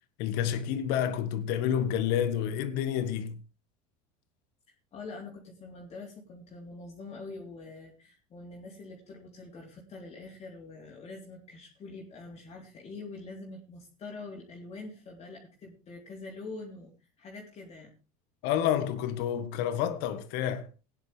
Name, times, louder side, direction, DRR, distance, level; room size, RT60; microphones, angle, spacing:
voice 1, 0.2-3.4 18.4-20.7, left 9 dB, 65° left, 1.6 m, -29 dB
voice 2, 4.9-16.9 17.2-17.9, left 3 dB, 35° left, 3.4 m, -44 dB
17.0 x 10.0 x 3.4 m
supercardioid pair, 105°, 18 cm